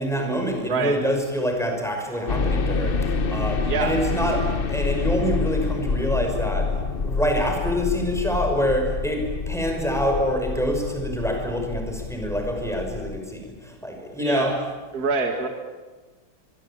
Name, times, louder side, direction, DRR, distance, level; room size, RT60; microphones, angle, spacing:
voice 1, 0.0-14.5, equal, ahead, 3 dB, 5.6 m, -26 dB
voice 2, 0.6-1.0 3.7-4.0 14.2-14.5 14.9-15.5, right 4 dB, 45° right, 4 dB, 2.5 m, -25 dB
sound 1, 2.3-13.2, left 4 dB, 45° left, 0.7 m, -27 dB
24.0 x 23.0 x 8.8 m, 1.3 s
omnidirectional pair, 2.3 m